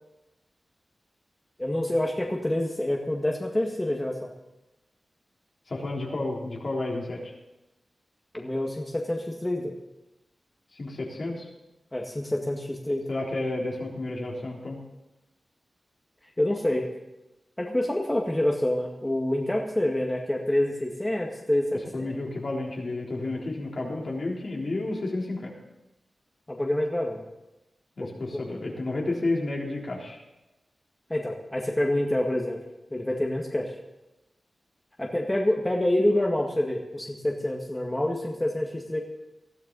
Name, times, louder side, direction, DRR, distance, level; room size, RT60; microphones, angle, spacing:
voice 1, 1.6-4.3 8.3-9.7 11.9-13.0 16.4-16.8 17.6-22.1 26.5-27.2 28.0-28.1 31.1-32.6 32.9-33.7 35.0-39.0, left 1 dB, 20° left, 0 dB, 1.9 m, -27 dB
voice 2, 5.7-7.3 10.8-11.5 13.1-14.8 21.9-25.5 28.0-30.2, left 2 dB, 60° left, -2 dB, 3.8 m, -31 dB
20.0 x 13.5 x 4.1 m, 0.99 s
cardioid pair, 55°, 0 cm